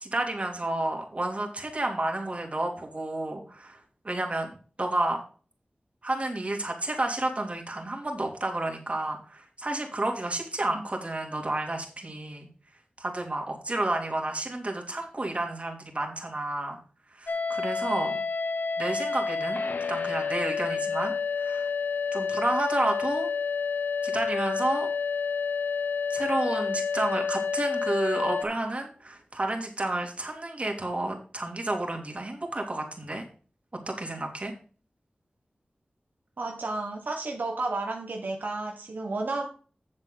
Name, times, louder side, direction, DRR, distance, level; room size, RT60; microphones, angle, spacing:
voice 1, 0.0-3.8 4.0-4.5 4.8-5.2 6.0-12.5 13.0-16.8 17.2-18.2 18.8-19.6 19.9-21.1 21.4-21.7 22.1-23.3 24.0-24.9 26.1-33.2 33.9-34.5, right 2 dB, 40° right, 2.8 m, -30 dB
sound 1, 17.3-28.4, left 5 dB, 80° left, 1.0 m, -29 dB
voice 2, 36.4-39.5, right 3 dB, 75° right, 1.3 m, -32 dB
8.9 x 7.5 x 3.9 m
wide cardioid pair, 65°, 3 cm